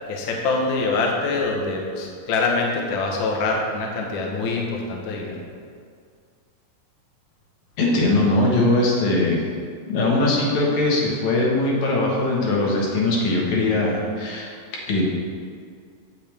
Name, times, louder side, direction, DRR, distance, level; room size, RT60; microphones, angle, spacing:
voice 1, 0.0-5.4, left 3 dB, 85° left, 0 dB, 1.0 m, -24 dB
voice 2, 7.8-9.4 9.9-15.0, left 2 dB, 65° left, -3 dB, 2.7 m, -21 dB
8.8 x 8.6 x 3.5 m, 2.1 s
omnidirectional pair, 3.9 m